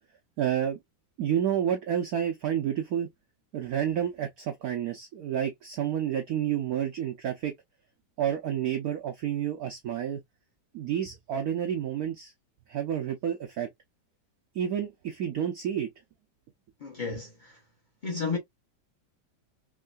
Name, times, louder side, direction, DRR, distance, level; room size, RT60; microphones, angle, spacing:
voice 1, 0.4-0.8 1.2-3.1 3.5-7.5 8.2-10.2 10.7-12.3 12.7-13.7 14.5-15.9, right 9 dB, 85° right, 0.8 m, -29 dB
voice 2, 16.8-17.6 18.0-18.4, left 4 dB, 50° left, 0.5 m, -32 dB
3.6 x 3.1 x 2.3 m
omnidirectional pair, 2.3 m